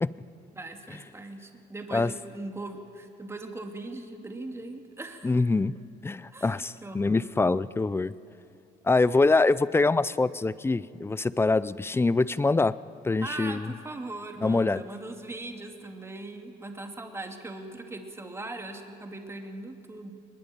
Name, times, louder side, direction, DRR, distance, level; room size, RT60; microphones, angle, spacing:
voice 1, 0.5-5.4 6.3-6.5 6.8-7.3 13.2-20.1, right 2 dB, 15° right, 4 dB, 2.5 m, -40 dB
voice 2, 5.2-8.1 8.8-12.7 13.0-13.7 14.4-14.8, left 3 dB, 15° left, 18 dB, 0.5 m, -24 dB
21.5 x 21.0 x 9.1 m, 2.5 s
cardioid pair, 110°, 17 cm